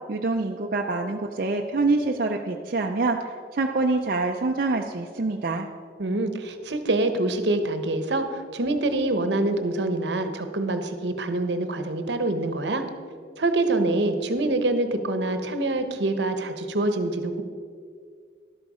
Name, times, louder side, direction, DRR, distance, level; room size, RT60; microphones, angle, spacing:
voice 1, 0.1-5.7, right 3 dB, 50° right, 2 dB, 0.5 m, -25 dB
voice 2, 6.0-12.8 13.4-17.4, right 2 dB, 75° right, 8 dB, 0.9 m, -25 dB
11.5 x 8.0 x 4.9 m, 2.1 s
head